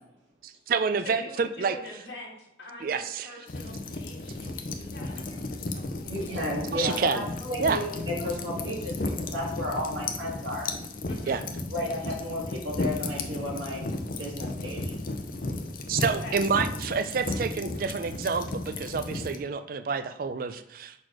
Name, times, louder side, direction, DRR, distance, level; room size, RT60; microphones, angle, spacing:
voice 1, 0.4-1.8 2.8-3.3 6.7-7.2 7.6-7.8 11.3-11.4 15.9-20.9, right 5 dB, 50° right, 10 dB, 0.4 m, -28 dB
voice 2, 1.0-6.1 7.1-7.3 11.1-11.4 16.0-16.4, left 1 dB, 70° left, -3 dB, 1.6 m, -45 dB
sound 1, 3.5-19.4, left 2 dB, 50° left, 0.6 m, -34 dB
voice 3, 6.1-10.7 11.7-13.8 14.2-15.0, left 1 dB, 90° right, -5 dB, 1.6 m, -33 dB
6.1 x 4.3 x 4.7 m, 0.83 s
head